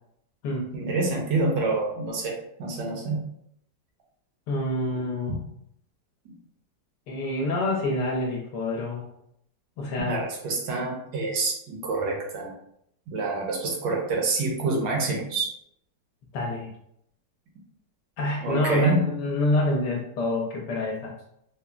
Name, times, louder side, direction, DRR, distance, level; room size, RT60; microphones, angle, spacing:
voice 1, 0.7-3.3 5.3-5.4 6.2-6.3 10.1-12.5 13.1-15.5 18.4-19.1, right 3 dB, 80° right, -1 dB, 1.3 m, -27 dB
voice 2, 4.5-5.3 7.1-9.0 9.8-10.2 16.3-16.7 18.2-21.1, left 2 dB, 75° left, -1 dB, 1.2 m, -27 dB
3.6 x 2.1 x 2.3 m, 0.74 s
omnidirectional pair, 1.9 m